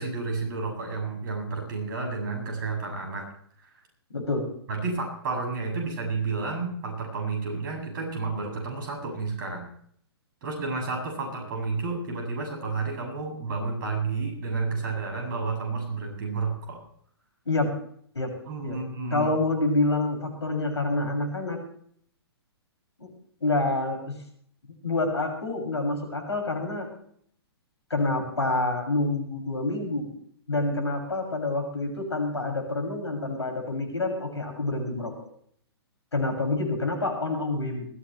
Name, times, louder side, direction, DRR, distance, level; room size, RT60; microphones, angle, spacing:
voice 1, 0.0-3.3 4.7-9.6 10.4-16.8 18.5-19.3, right 4 dB, 45° right, 2 dB, 7.6 m, -31 dB
voice 2, 4.1-4.4 17.4-17.7 18.1-18.3 18.6-18.8 19.1-21.6 23.0-23.1 23.4-24.2 24.8-26.9 27.9-30.1 30.5-35.1 36.1-37.9, left 2 dB, 80° left, 3 dB, 6.7 m, -27 dB
20.0 x 15.5 x 3.3 m, 0.63 s
figure-of-eight pair, 120°, 14 cm